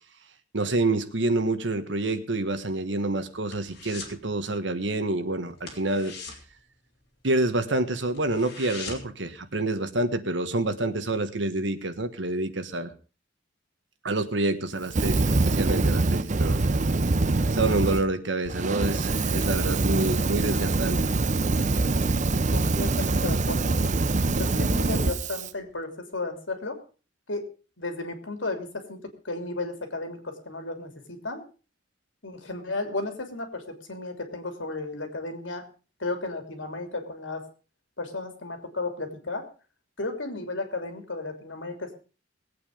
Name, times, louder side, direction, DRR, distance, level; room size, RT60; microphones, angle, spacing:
voice 1, 0.5-6.1 7.2-12.9 14.0-16.6 17.5-21.1, right 2 dB, 70° right, 9 dB, 1.6 m, -27 dB
sound 1, 2.7-4.2 4.5-4.8 5.1-5.2 5.6-7.5 7.8-9.3 9.6-9.7, left 4 dB, 60° left, 3.8 m, -41 dB
Fire, 14.9-18.0 18.5-25.5, right 3 dB, 40° right, 0.6 m, -24 dB
voice 2, 22.5-23.9 24.4-26.8 27.3-27.5 27.8-29.0 29.2-31.4 32.2-35.6 36.0-37.4 38.0-39.5 40.0-41.9, left 2 dB, 85° left, 6 dB, 3.0 m, -34 dB
20.5 x 8.6 x 5.1 m, 0.35 s
head